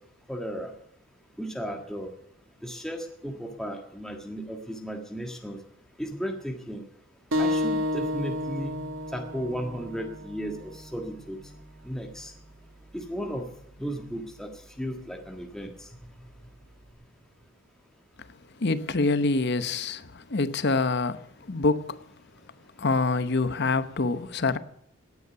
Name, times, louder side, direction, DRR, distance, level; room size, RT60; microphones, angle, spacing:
voice 1, 0.3-0.7 1.4-2.1 2.6-5.6 6.0-6.8 7.4-8.8 9.1-11.4 11.8-12.3 12.9-13.5 13.8-14.5 14.8-15.7, equal, 5° left, 1.7 m, -35 dB
sound 1, 7.3-12.4, left 1 dB, 75° right, 2.0 m, -32 dB
voice 2, 18.6-22.0 22.8-24.6, left 3 dB, 55° left, 0.9 m, -26 dB
18.0 x 9.7 x 6.9 m
head